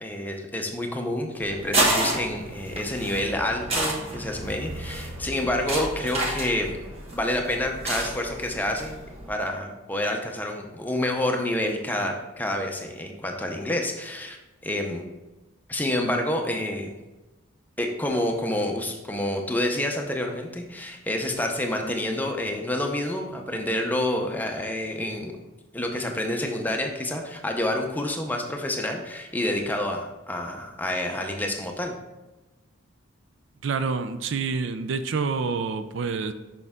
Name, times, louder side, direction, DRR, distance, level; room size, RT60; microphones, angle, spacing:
voice 1, 0.0-6.8 7.1-9.0 9.3-14.4 14.6-15.1 15.7-16.9 17.8-25.4 25.7-31.9, left 1 dB, 10° left, 2 dB, 0.6 m, -28 dB
sound 1, 1.4-9.3, right 1 dB, 30° right, 1.1 m, -30 dB
voice 2, 33.6-36.3, right 4 dB, 60° right, 10 dB, 0.4 m, -27 dB
6.6 x 5.7 x 3.6 m, 1.1 s
head